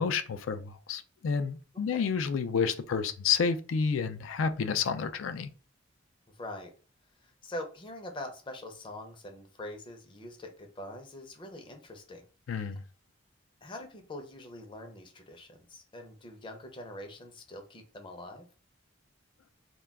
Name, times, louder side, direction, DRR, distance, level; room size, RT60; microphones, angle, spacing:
voice 1, 0.0-5.5 12.5-12.8, left 6 dB, 85° left, 0.4 m, -30 dB
voice 2, 6.4-6.7 7.2-12.2 13.6-18.5, left 1 dB, 25° left, 0.5 m, -44 dB
2.2 x 2.2 x 3.4 m
head